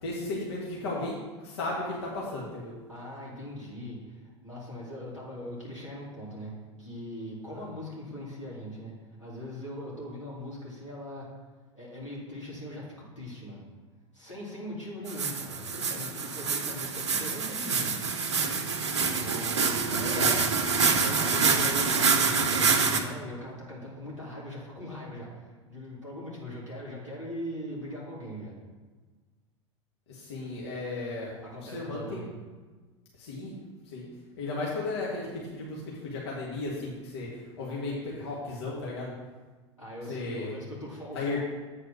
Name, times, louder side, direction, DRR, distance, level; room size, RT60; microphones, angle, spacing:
voice 1, 0.0-2.7 7.5-7.6 19.9-20.6 30.1-31.3 31.6-32.3 33.2-33.6 33.8-34.1 34.4-39.1 40.1-40.5 41.1-41.4, left 2 dB, 60° left, -4 dB, 1.5 m, -35 dB
voice 2, 2.9-6.5 6.8-8.9 9.2-11.3 11.7-13.6 14.1-18.0 19.1-19.7 21.0-28.5 31.4-32.3 39.8-41.4, equal, 90° left, -7 dB, 2.6 m, -40 dB
sound 1, 15.1-23.0, right 5 dB, 70° right, 0.8 m, -26 dB
8.2 x 4.2 x 6.1 m, 1.3 s
figure-of-eight pair, 85°, 15 cm